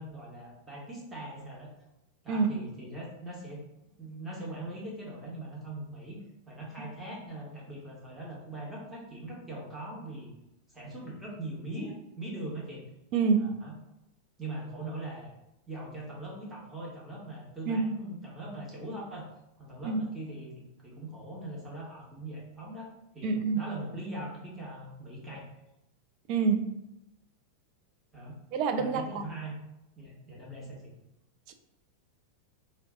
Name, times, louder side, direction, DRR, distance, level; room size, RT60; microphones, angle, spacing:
voice 1, 0.0-1.7 2.2-3.6 4.0-10.3 10.7-12.9 13.3-13.7 14.4-15.3 15.7-19.3 19.6-22.9 23.1-25.5 28.1-28.3 28.8-29.6 30.0-30.9, right 1 dB, 10° right, -4 dB, 1.0 m, -41 dB
voice 2, 13.1-13.6 17.7-17.8 19.8-20.0 23.2-23.7 26.3-26.7 28.5-29.0 31.5-31.6, right 5 dB, 40° right, 7 dB, 0.3 m, -26 dB
2.5 x 2.1 x 3.7 m, 0.86 s
figure-of-eight pair, 90°, 0 cm